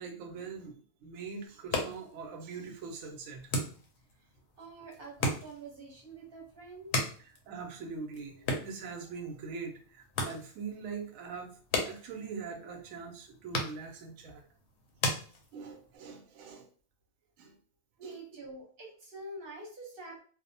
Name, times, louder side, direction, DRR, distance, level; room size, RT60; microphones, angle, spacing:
voice 1, 0.0-3.5 7.2-11.6 11.8-14.4 15.5-16.7 17.4-17.5 18.0-18.2, right 5 dB, 75° right, 2 dB, 1.0 m, -42 dB
sound 1, 1.5-16.0, left 2 dB, 60° left, 0.8 m, -38 dB
voice 2, 4.6-7.1 8.4-8.5 18.0-20.2, right 2 dB, 45° right, -2 dB, 1.0 m, -46 dB
2.6 x 2.0 x 2.6 m, 0.43 s
omnidirectional pair, 1.4 m